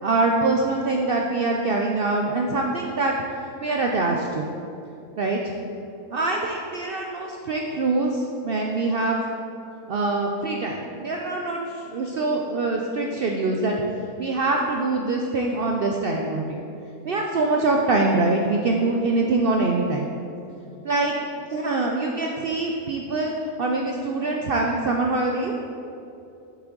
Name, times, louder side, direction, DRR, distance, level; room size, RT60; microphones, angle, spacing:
voice 1, 0.0-3.1 3.6-4.5 5.2-5.4 6.1-9.2 9.9-13.7 14.2-16.6 17.0-20.1 20.8-25.5, right 2 dB, 80° right, 0 dB, 0.5 m, -24 dB
6.6 x 6.0 x 3.8 m, 2.7 s
omnidirectional pair, 1.5 m